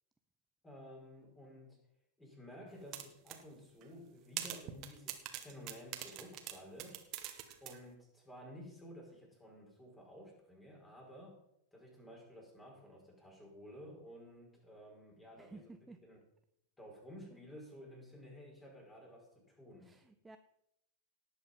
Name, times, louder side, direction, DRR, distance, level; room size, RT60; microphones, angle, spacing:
voice 1, 0.6-1.8 2.2-7.0 7.6-11.4 11.7-16.2 16.8-20.0, equal, 10° left, 0 dB, 5.6 m, -53 dB
sound 1, 2.9-3.4 3.8-3.9 4.4-7.8, right 12 dB, 40° right, 1.7 m, -43 dB
voice 2, 15.4-16.0 19.8-20.4, right 3 dB, 10° right, 9 dB, 0.7 m, -54 dB
18.5 x 8.1 x 5.5 m, 0.81 s
figure-of-eight pair, 90°, 0 cm